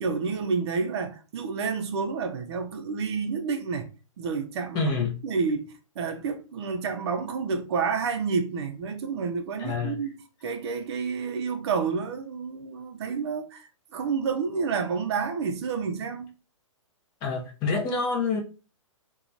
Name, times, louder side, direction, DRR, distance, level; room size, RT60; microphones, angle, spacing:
voice 1, 0.0-3.9 4.2-4.9 5.2-10.1 10.4-16.3, right 5 dB, 50° right, 0.5 m, -29 dB
voice 2, 4.7-5.1 9.6-10.0 17.2-18.4, left 4 dB, 25° left, 0.5 m, -27 dB
2.9 x 2.3 x 2.5 m
hypercardioid pair, 145°, 17 cm